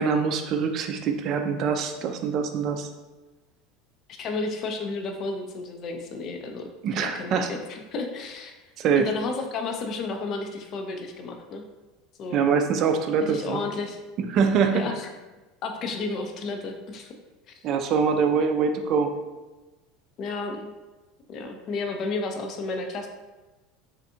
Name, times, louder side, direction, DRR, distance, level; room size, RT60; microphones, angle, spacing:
voice 1, 0.0-2.9 6.8-7.5 8.8-9.1 12.3-13.6 14.2-14.8 17.6-19.1, right 6 dB, 50° right, 5 dB, 0.3 m, -24 dB
voice 2, 4.2-6.7 7.0-8.5 9.0-11.6 12.2-12.4 13.3-14.0 14.7-15.1 15.6-17.1 17.6-17.7 20.2-20.7 21.3-23.1, left 3 dB, 45° left, 4 dB, 0.4 m, -32 dB
3.3 x 2.5 x 2.6 m, 1.2 s
hypercardioid pair, 75°, 0 cm